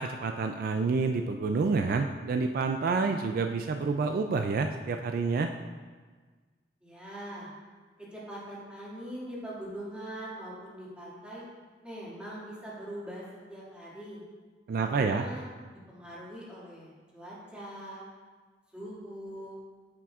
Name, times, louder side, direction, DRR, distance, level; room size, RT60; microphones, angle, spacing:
voice 1, 0.0-5.5 14.7-15.3, right 4 dB, 55° right, 6 dB, 0.3 m, -28 dB
voice 2, 6.8-7.5 8.1-11.5 11.8-13.2 13.5-14.2 14.7-15.5 15.9-18.0 18.7-19.6, right 1 dB, 5° right, -8 dB, 2.1 m, -42 dB
8.7 x 7.5 x 2.4 m, 1.4 s
head